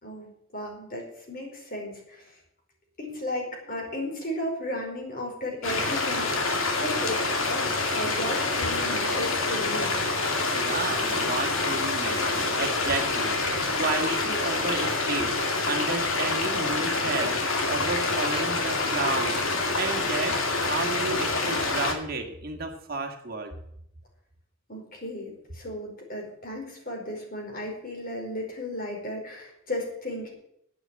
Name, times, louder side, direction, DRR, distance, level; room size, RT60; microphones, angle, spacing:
voice 1, 0.0-2.4 3.0-10.0 24.7-30.3, left 1 dB, 45° left, 0 dB, 4.9 m, -35 dB
sound 1, 5.6-21.9, left 3 dB, 80° left, 2.5 m, -27 dB
voice 2, 10.5-23.5, right 3 dB, 45° right, 3 dB, 2.0 m, -32 dB
11.0 x 9.3 x 8.8 m, 0.74 s
head